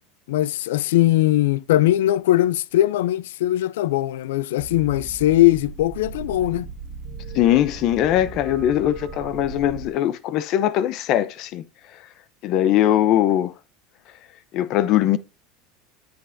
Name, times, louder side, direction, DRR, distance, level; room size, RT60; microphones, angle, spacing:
voice 1, 0.3-6.7, left 14 dB, 85° left, 0.4 m, -20 dB
sound 1, 4.6-9.9, right 5 dB, 45° right, 1.7 m, -37 dB
voice 2, 7.3-11.6 12.4-13.5 14.5-15.2, left 12 dB, 55° left, 0.7 m, -20 dB
9.5 x 8.0 x 2.7 m
supercardioid pair, 120°, 0 cm